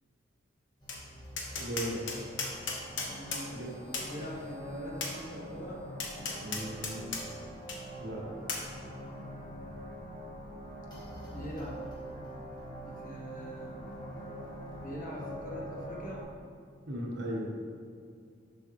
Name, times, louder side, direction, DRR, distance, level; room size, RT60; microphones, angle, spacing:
sound 1, 0.8-16.2, equal, 25° left, 1.4 m, -44 dB
Tap, 0.9-1.0 1.4-3.4 3.9-4.1 5.0-5.1 6.0-7.2 7.7-7.8 8.5-8.6, left 4 dB, 70° left, 0.9 m, -35 dB
voice 1, 1.5-2.1 3.5-3.8 6.4-7.2 8.0-8.2 16.9-17.5, equal, 65° right, -2 dB, 1.3 m, -37 dB
voice 2, 3.1-3.5 4.0-5.8 11.3-11.9 12.9-13.8 14.8-16.3, equal, 45° left, -2 dB, 1.2 m, -42 dB
6.8 x 5.7 x 3.1 m, 2.2 s
head